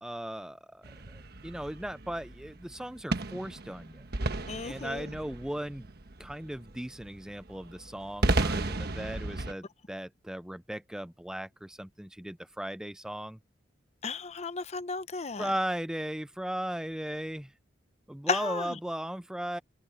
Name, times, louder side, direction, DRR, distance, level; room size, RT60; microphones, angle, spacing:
voice 1, 0.0-4.0 4.6-5.9 6.2-13.4 15.4-17.5 18.1-19.6, right 1 dB, 5° right, 0.4 m, -37 dB
sound 1, 0.8-9.5, right 2 dB, 55° right, 1.3 m, -34 dB
voice 2, 4.5-5.0 14.0-15.5 18.3-18.6, left 4 dB, 35° left, 0.7 m, -33 dB
open air
head